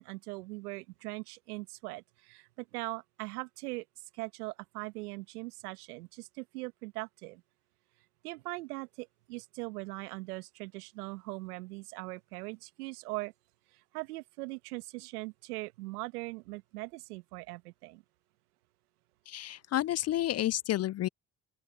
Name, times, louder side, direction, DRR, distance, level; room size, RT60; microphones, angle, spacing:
voice 1, 0.0-3.8 4.1-7.4 8.2-13.3 13.7-18.0, right 22 dB, 80° right, 1.6 m, -41 dB
voice 2, 19.3-21.1, left 13 dB, 35° left, 0.4 m, -30 dB
open air
hypercardioid pair, 60°, 45 cm